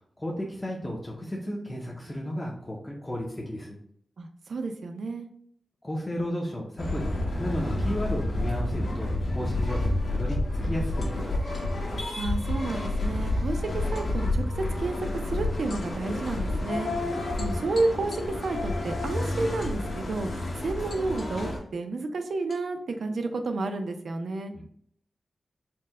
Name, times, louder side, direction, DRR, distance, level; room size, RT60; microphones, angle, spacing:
voice 1, 0.2-3.8 5.8-11.3 17.1-17.4 24.5-24.6, equal, 15° left, -2 dB, 0.5 m, -34 dB
voice 2, 4.2-5.3 12.2-16.9 17.4-24.5, right 3 dB, 70° right, 6 dB, 0.5 m, -31 dB
sound 1, 6.8-21.6, left 1 dB, 90° left, 1.3 m, -29 dB
sound 2, 11.0-11.8 13.9-14.7 15.7-16.4 17.4-18.8 19.6-20.3 20.9-21.5 22.5-22.6, left 2 dB, 65° left, 0.9 m, -50 dB
4.4 x 2.1 x 3.6 m, 0.66 s
wide cardioid pair, 180°, 0 cm